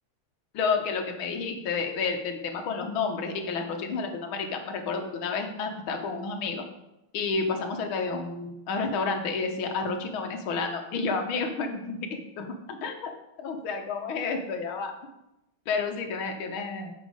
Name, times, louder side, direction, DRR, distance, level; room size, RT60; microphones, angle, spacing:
voice 1, 0.5-6.6 7.1-13.1 13.4-14.9 15.7-16.9, left 4 dB, 70° left, 5 dB, 1.8 m, -30 dB
7.3 x 6.1 x 5.0 m, 0.90 s
omnidirectional pair, 2.4 m